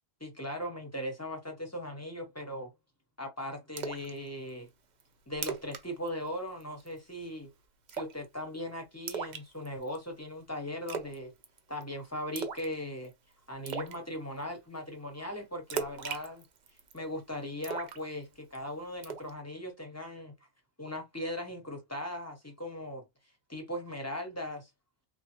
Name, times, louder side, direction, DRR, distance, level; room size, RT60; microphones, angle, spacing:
voice 1, 0.2-2.7 3.2-4.7 5.3-7.5 7.9-11.3 11.7-13.1 13.5-16.4 16.9-20.4 20.8-23.0 23.5-24.7, left 1 dB, 15° left, 0.9 m, -39 dB
Splash splatter, 3.8-4.1 4.5-4.6 5.0-5.1 5.3-5.8 6.1-6.3 6.6-7.0 7.9-8.3 9.1-10.0 10.9-11.2 11.4-11.8 12.4-12.7 13.0-13.1 13.7-14.0 15.7-17.0 17.6-18.6 19.0-19.3, right 6 dB, 55° right, 0.6 m, -37 dB
3.2 x 2.2 x 2.9 m
omnidirectional pair, 1.1 m